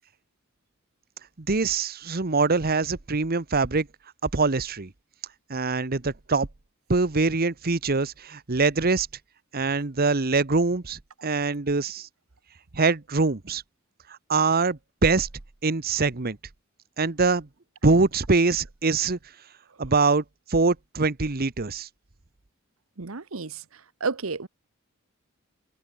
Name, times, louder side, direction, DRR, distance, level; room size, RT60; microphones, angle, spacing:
voice 1, 1.4-3.9 4.2-4.9 5.5-6.5 6.9-9.1 9.5-12.1 12.7-13.6 14.3-15.3 15.6-16.4 17.0-17.5 17.8-19.2 19.8-20.2 20.5-21.9, right 3 dB, 45° right, 1.1 m, -23 dB
voice 2, 23.0-24.5, right 4 dB, 80° right, 1.1 m, -32 dB
head